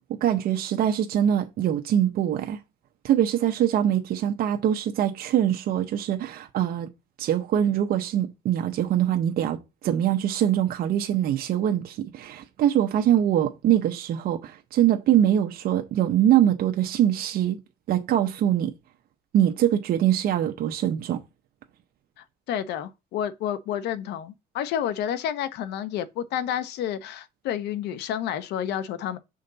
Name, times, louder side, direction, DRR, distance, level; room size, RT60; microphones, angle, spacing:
voice 1, 0.2-2.6 3.0-6.9 7.2-9.6 9.8-17.6 17.9-18.7 19.3-21.2, right 10 dB, 60° right, 0.9 m, -23 dB
voice 2, 22.2-29.2, left 10 dB, 80° left, 0.9 m, -30 dB
6.7 x 5.1 x 4.0 m
cardioid pair, 110°, 17 cm